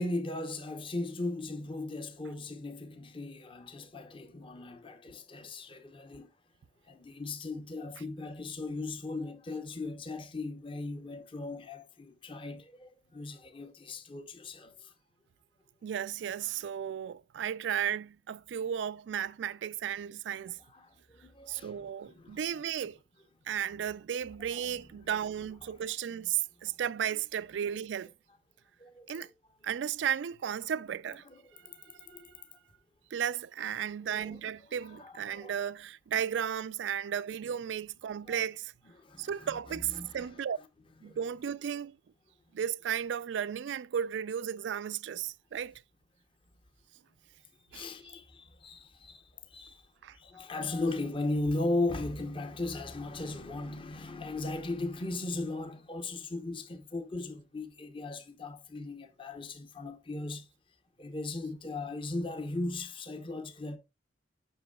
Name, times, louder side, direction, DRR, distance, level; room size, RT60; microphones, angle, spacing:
voice 1, 0.0-6.3 6.9-14.9 20.7-22.4 24.6-24.7 25.2-25.3 25.6-25.7 27.1-27.2 28.8-29.1 31.2-32.3 34.0-34.4 34.8-35.5 38.3-38.4 39.0-40.3 41.1-41.2 47.7-49.8 50.1-60.5 61.0-63.8, left 2 dB, 30° left, 0.8 m, -37 dB
voice 2, 15.8-20.6 21.5-23.0 23.5-28.1 29.1-29.3 29.6-31.2 32.1-32.2 33.1-38.7 39.2-40.6 41.0-41.9 42.5-45.8 47.7-47.9 50.0-50.2, right 9 dB, 75° right, 0.3 m, -34 dB
7.8 x 6.0 x 2.2 m
head